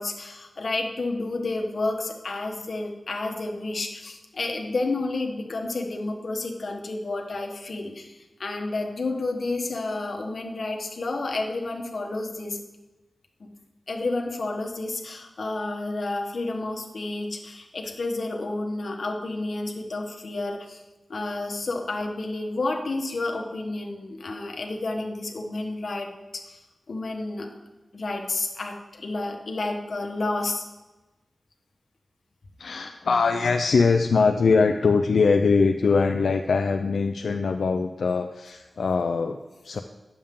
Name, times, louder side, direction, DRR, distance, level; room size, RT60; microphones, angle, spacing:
voice 1, 0.0-12.6 13.9-20.8 21.1-26.6 26.9-27.5 27.9-30.7, left 2 dB, 60° left, 2 dB, 1.2 m, -30 dB
voice 2, 32.6-39.8, left 4 dB, 80° left, 6 dB, 0.4 m, -22 dB
10.0 x 7.1 x 3.7 m, 1.1 s
wide cardioid pair, 105°, 0 cm